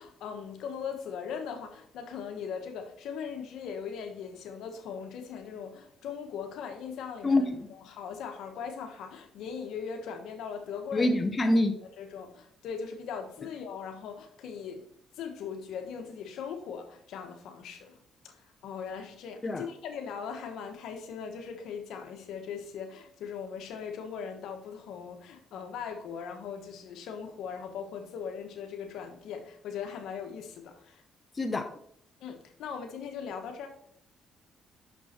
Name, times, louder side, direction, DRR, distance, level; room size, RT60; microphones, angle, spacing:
voice 1, 0.0-11.1 11.5-11.6 12.0-14.8 15.2-18.0 18.2-31.0 32.2-33.7, left 6 dB, 85° left, 1.2 m, -39 dB
voice 2, 7.2-7.6 10.9-11.7 19.4-19.6 31.4-31.7, left 2 dB, 30° left, 0.8 m, -25 dB
6.2 x 6.1 x 4.3 m
cardioid pair, 90°, 0 cm